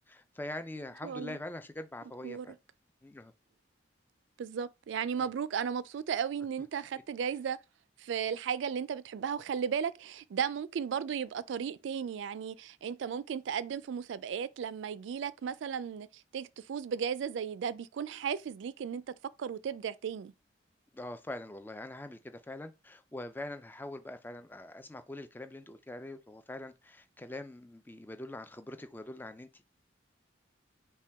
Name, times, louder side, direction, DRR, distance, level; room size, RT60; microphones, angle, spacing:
voice 1, 0.1-2.5 3.0-3.3 5.2-5.3 20.9-29.6, left 1 dB, 10° left, 0.3 m, -43 dB
voice 2, 1.0-1.4 2.2-2.5 4.4-7.6 8.0-16.1 16.3-20.3, right 7 dB, 75° right, 0.3 m, -35 dB
5.6 x 2.2 x 3.4 m
head